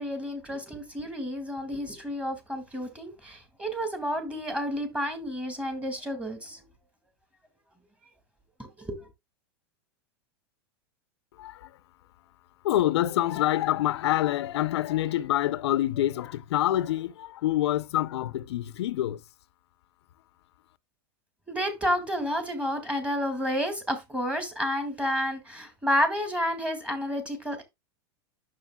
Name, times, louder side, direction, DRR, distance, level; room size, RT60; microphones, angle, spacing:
voice 1, 0.0-6.6 8.6-9.1 21.5-27.6, equal, 10° right, 1.9 m, -30 dB
voice 2, 11.3-11.8 12.6-19.2, left 13 dB, 80° left, 0.6 m, -26 dB
9.4 x 6.4 x 2.2 m
supercardioid pair, 130°, 14 cm